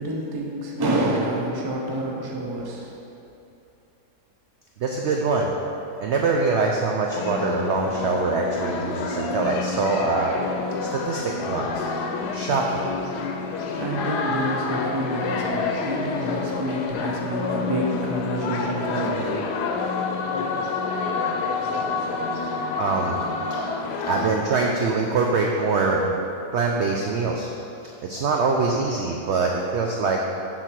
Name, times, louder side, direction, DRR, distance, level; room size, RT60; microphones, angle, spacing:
voice 1, 0.0-2.9 13.7-19.5, right 1 dB, 30° right, -2 dB, 0.4 m, -28 dB
voice 2, 4.8-5.5 6.0-10.3 10.8-11.8 12.3-12.9 22.8-23.2 24.0-26.2 26.5-27.5 28.0-30.3, right 4 dB, 75° right, 0 dB, 0.6 m, -24 dB
sound 1, 7.1-24.3, left 4 dB, 90° left, 1.2 m, -28 dB
6.7 x 3.9 x 5.9 m, 2.7 s
omnidirectional pair, 1.7 m